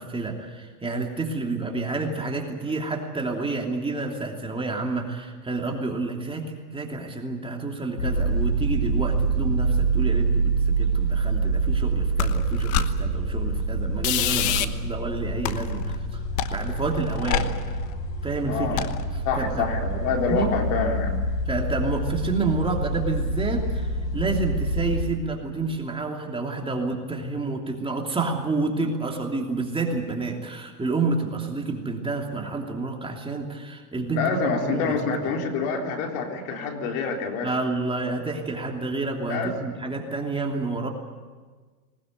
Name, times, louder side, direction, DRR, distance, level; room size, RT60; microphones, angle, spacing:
voice 1, 0.0-16.2 16.5-17.5 18.2-18.9 19.4-19.6 20.3-20.5 21.5-23.9 24.1-34.9 37.4-40.9, right 3 dB, 10° right, 1 dB, 2.9 m, -29 dB
sound 1, 8.0-25.0, right 3 dB, 85° left, 5.0 m, -26 dB
sound 2, 12.2-12.9 14.0-14.7 15.4-16.0 16.4-17.9 18.8-19.0, left 12 dB, 40° left, 1.2 m, -27 dB
voice 2, 18.4-18.9 19.3-21.2 34.1-37.6 39.3-39.5, left 4 dB, 60° left, 2 dB, 3.9 m, -27 dB
20.0 x 19.5 x 9.3 m, 1.4 s
hypercardioid pair, 115°, 46 cm